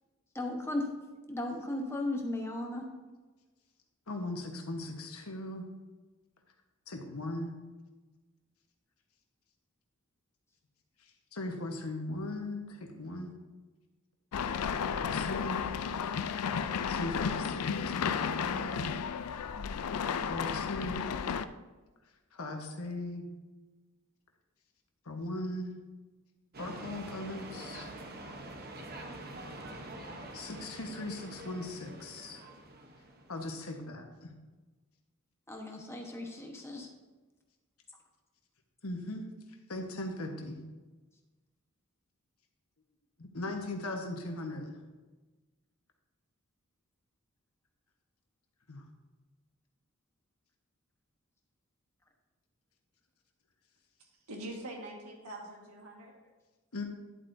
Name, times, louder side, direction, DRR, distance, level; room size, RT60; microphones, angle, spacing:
voice 1, 0.3-0.9 1.3-2.8 35.5-36.9, left 1 dB, 10° left, 1 dB, 1.1 m, -36 dB
voice 2, 4.1-5.7 6.9-7.5 11.3-13.3 15.0-15.6 16.9-18.9 20.3-21.1 22.3-23.2 25.0-25.7 26.6-27.9 30.3-32.4 33.3-34.3 38.8-39.2 39.7-40.6 43.2-44.8 48.7-48.8 56.7-56.8, left 2 dB, 70° left, 3 dB, 1.3 m, -39 dB
sound 1, 14.3-21.4, left 6 dB, 90° left, 0.4 m, -33 dB
sound 2, 26.5-33.6, right 1 dB, 45° right, 1.0 m, -45 dB
voice 3, 54.0-56.1, right 1 dB, 85° right, 0 dB, 1.7 m, -44 dB
11.0 x 8.0 x 2.7 m, 1.2 s
head